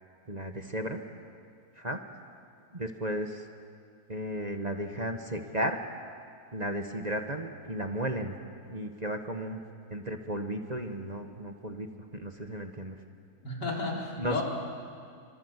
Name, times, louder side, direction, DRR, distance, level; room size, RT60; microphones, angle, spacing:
voice 1, 0.3-1.0 1.8-2.0 2.7-3.4 4.1-5.8 6.5-8.3 8.7-9.6 9.9-11.9 12.1-12.9 14.2-14.4, right 1 dB, 25° right, 5 dB, 1.3 m, -34 dB
voice 2, 13.4-14.4, left 2 dB, 85° left, -3 dB, 5.0 m, -32 dB
26.5 x 25.0 x 8.2 m, 2.3 s
omnidirectional pair, 1.8 m